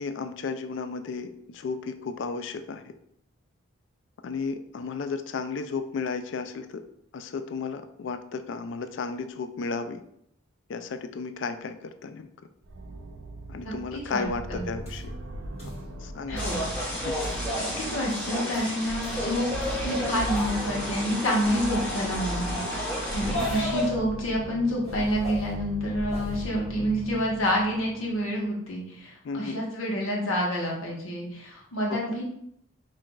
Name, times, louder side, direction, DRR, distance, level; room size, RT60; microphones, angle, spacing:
voice 1, 0.0-2.9 4.2-6.8 7.1-10.0 10.7-12.3 13.5-15.1 15.6-15.7 16.0-16.5 17.0-17.1 17.6-18.0 23.3-23.5 29.2-29.6 31.9-32.1, left 4 dB, 60° left, 9 dB, 0.3 m, -34 dB
sound 1, 12.6-28.3, right 1 dB, 65° right, 0.5 m, -38 dB
voice 2, 13.6-14.6 16.3-16.9 17.8-19.5 19.7-22.8 23.1-32.2, equal, 85° left, -3 dB, 1.1 m, -28 dB
sound 2, 14.8-15.1 15.6-15.8 16.3-16.7 17.2-17.5 17.9-19.9 20.3-20.8 22.8-23.7 24.8-25.5 26.1-26.4, equal, 30° left, 1.5 m, -45 dB
sound 3, 16.4-23.9, left 1 dB, 10° left, 1.2 m, -31 dB
5.6 x 2.5 x 2.3 m, 0.74 s
head